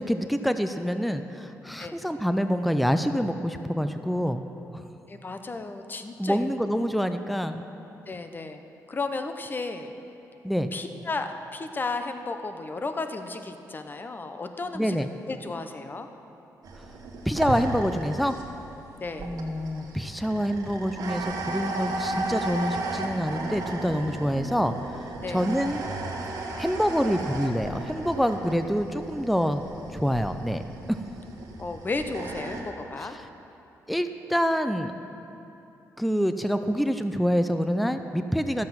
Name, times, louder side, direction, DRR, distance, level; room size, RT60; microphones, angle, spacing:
voice 1, 0.0-4.4 4.7-4.8 6.2-7.6 10.4-10.7 14.7-15.1 17.3-18.3 19.2-24.7 25.3-25.8 26.6-29.6 29.9-30.6 33.9-34.9 36.0-38.7, equal, ahead, 9 dB, 0.5 m, -26 dB
voice 2, 5.1-6.4 8.1-8.6 8.9-9.9 10.7-15.0 15.3-16.1 19.0-19.4 25.2-25.5 31.6-33.2, left 3 dB, 30° left, 7 dB, 0.8 m, -34 dB
sound 1, 16.6-32.6, right 2 dB, 70° right, 1.5 m, -35 dB
12.5 x 7.5 x 5.9 m, 2.9 s
cardioid pair, 85°, 7 cm